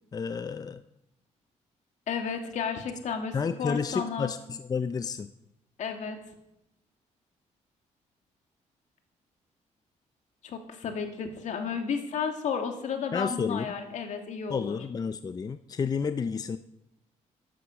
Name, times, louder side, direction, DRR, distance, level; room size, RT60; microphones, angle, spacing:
voice 1, 0.1-0.8 3.3-5.3 13.1-13.8 14.5-16.6, left 5 dB, 30° left, 12 dB, 0.5 m, -31 dB
voice 2, 2.1-4.3 5.8-6.2 10.4-14.8, left 6 dB, 70° left, 5 dB, 2.4 m, -33 dB
13.5 x 11.5 x 7.1 m, 0.87 s
cardioid pair, 125°, 13 cm